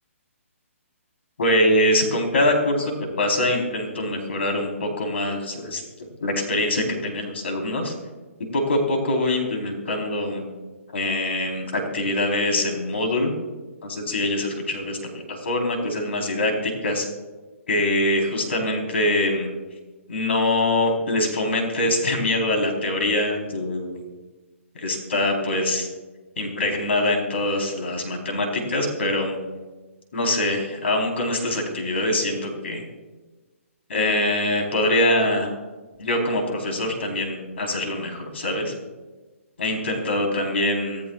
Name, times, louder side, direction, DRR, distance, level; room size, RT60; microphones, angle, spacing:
voice 1, 1.4-7.9 8.5-10.5 10.9-13.3 13.8-15.0 15.3-17.0 17.7-19.5 20.1-24.0 24.7-25.9 26.4-29.4 30.1-32.8 33.9-35.5 36.0-38.7 39.6-41.0, left 1 dB, 55° left, 2 dB, 4.2 m, -24 dB
27.0 x 14.0 x 2.5 m, 1.2 s
hypercardioid pair, 175°, 8 cm